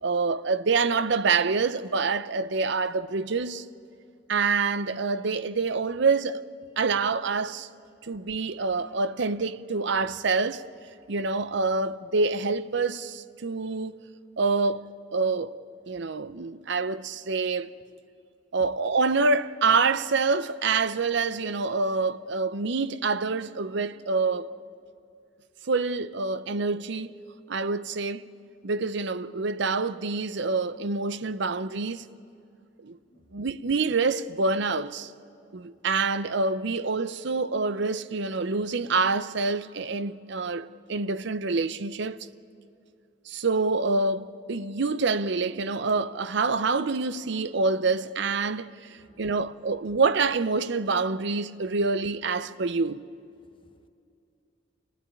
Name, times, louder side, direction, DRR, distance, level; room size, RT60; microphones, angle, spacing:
voice 1, 0.0-3.6 4.3-6.4 6.8-7.7 8.1-10.6 11.1-14.0 14.4-14.9 15.1-15.6 15.9-17.7 18.5-24.5 25.6-27.2 27.5-28.2 28.6-32.0 32.8-33.0 33.3-35.1 35.5-42.2 43.3-53.0, right 4 dB, 65° right, 0.7 m, -26 dB
voice 2, 53.4-53.9, left 1 dB, 25° left, 1.0 m, -61 dB
26.5 x 16.5 x 9.8 m
head